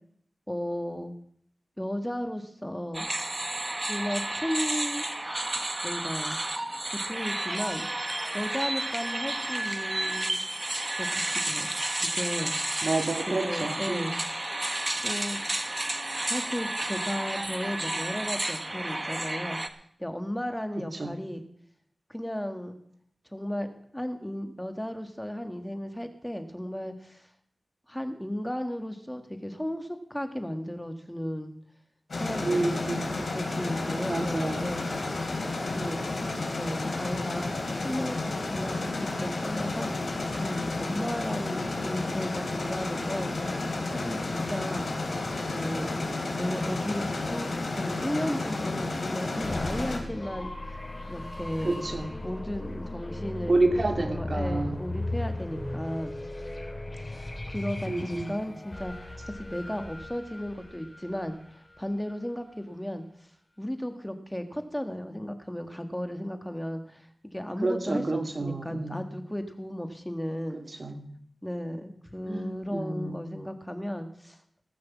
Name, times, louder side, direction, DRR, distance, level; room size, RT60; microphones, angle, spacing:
voice 1, 0.5-1.1 1.8-3.1 3.9-5.0 5.8-6.4 6.9-7.9 8.3-10.4 11.0-11.7 12.0-12.9 13.3-14.2 15.0-15.4 16.3-21.4 22.1-22.8 23.3-27.3 27.9-31.5 32.1-34.9 35.7-36.0 36.6-37.5 37.8-43.4 43.9-45.0 45.4-45.9 46.4-50.5 51.1-51.8 52.2-53.5 54.0-56.1 57.1-63.0 63.6-70.8 71.4-74.4, equal, 10° left, 7 dB, 1.7 m, -35 dB
sound 1, 2.9-19.7, right 1 dB, 30° right, 1.2 m, -31 dB
voice 2, 12.8-14.1 20.9-21.1 32.4-33.2 34.1-34.7 51.6-52.1 53.5-54.8 57.9-58.4 67.6-69.0 70.5-71.1 72.3-73.3, right 2 dB, 55° right, 4 dB, 2.3 m, -29 dB
sound 2, 32.1-50.0, left 2 dB, 75° left, 3.3 m, -31 dB
sound 3, 49.4-62.1, left 2 dB, 35° left, 3.2 m, -37 dB
18.5 x 6.3 x 7.3 m, 0.66 s
cardioid pair, 45°, 0 cm